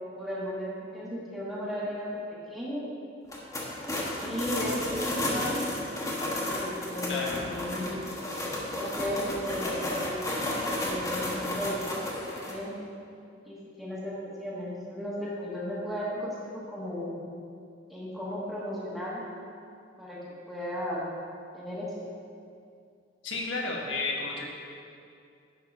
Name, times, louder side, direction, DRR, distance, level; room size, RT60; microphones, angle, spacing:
voice 1, 0.2-2.9 4.2-5.6 6.5-7.9 8.7-10.3 10.8-12.7 13.5-14.1 14.4-17.2 17.9-19.2 20.0-20.2 20.5-21.0 21.5-21.9, left 1 dB, ahead, -8 dB, 1.5 m, -35 dB
sound 1, 3.2-12.5, left 1 dB, 15° left, 1.2 m, -32 dB
voice 2, 7.1-7.4 23.2-24.5, left 3 dB, 80° left, -1 dB, 1.4 m, -32 dB
10.5 x 4.3 x 5.4 m, 2.4 s
head